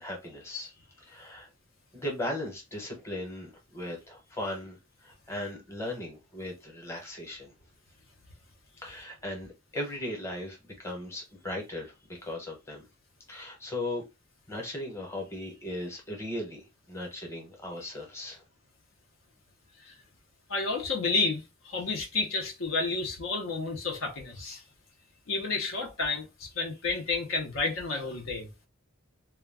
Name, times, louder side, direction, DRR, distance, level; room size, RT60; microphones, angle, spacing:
voice 1, 0.0-1.5 1.9-7.5 8.8-11.9 12.2-12.9 13.3-14.0 14.5-18.4, left 1 dB, 15° left, 0.9 m, -37 dB
voice 2, 20.5-24.6 25.3-28.5, left 3 dB, 65° left, 0.7 m, -31 dB
2.3 x 2.2 x 3.4 m
head